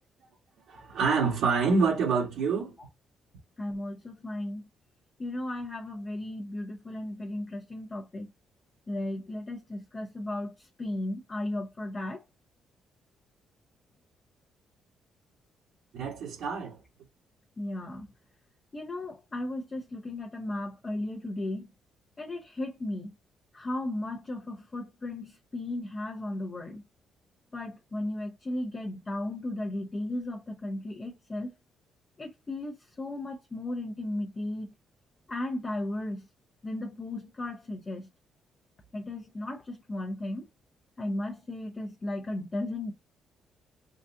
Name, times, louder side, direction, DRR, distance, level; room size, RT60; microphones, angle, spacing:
voice 1, 0.7-2.8 15.9-16.8, right 5 dB, 80° right, 1.5 m, -27 dB
voice 2, 3.6-4.6 5.2-8.3 8.9-12.2 17.6-18.1 18.7-21.7 22.2-23.1 23.5-26.8 27.5-31.5 32.2-34.7 35.3-36.3 36.6-38.1 38.9-40.5 41.0-42.9, left 1 dB, 30° left, 0.8 m, -35 dB
3.9 x 2.4 x 2.6 m
cardioid pair, 90°, 0 cm